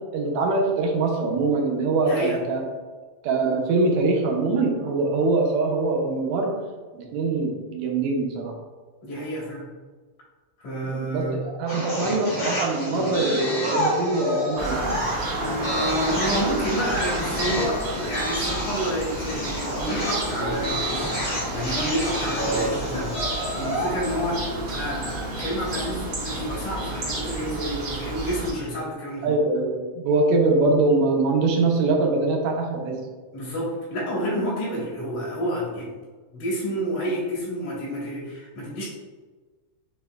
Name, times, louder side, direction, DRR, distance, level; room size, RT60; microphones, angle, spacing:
voice 1, 0.1-2.6 3.2-6.5 6.9-8.5 10.8-15.0 29.2-33.0, right 3 dB, 75° right, 1 dB, 2.0 m, -23 dB
voice 2, 2.0-2.4 9.0-9.7 10.6-11.4 15.5-21.0 21.5-29.3 33.3-36.0 36.3-38.9, equal, 90° left, -5 dB, 3.1 m, -29 dB
sound 1, 11.7-24.0, equal, 55° left, 0.5 m, -29 dB
sound 2, 14.6-28.5, right 2 dB, 60° right, 1.4 m, -31 dB
6.9 x 3.2 x 2.3 m, 1.3 s
omnidirectional pair, 3.3 m